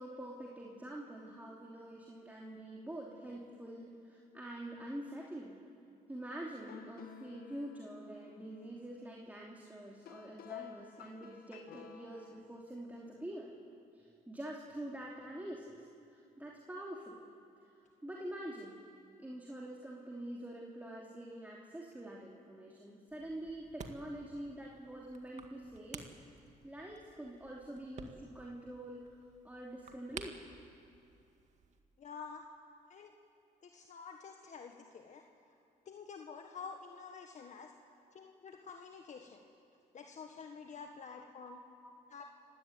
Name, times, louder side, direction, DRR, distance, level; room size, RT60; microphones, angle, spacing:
voice 1, 0.0-5.6 6.1-13.5 13.9-15.9 16.1-17.2 18.0-18.8 19.2-26.1 26.6-29.1 29.4-30.4 41.5-41.9, right 1 dB, 10° right, -3 dB, 3.0 m, -46 dB
sound 1, 6.4-12.4, left 9 dB, 75° left, 1.6 m, -53 dB
sound 2, 23.1-31.8, right 5 dB, 50° right, 2.1 m, -53 dB
voice 2, 32.0-32.4 32.9-33.1 33.6-35.2 35.8-37.7 38.1-39.4 39.9-41.6 42.1-42.2, left 5 dB, 50° left, 3 dB, 1.6 m, -49 dB
30.0 x 16.5 x 9.3 m, 2.5 s
cardioid pair, 90°, 16 cm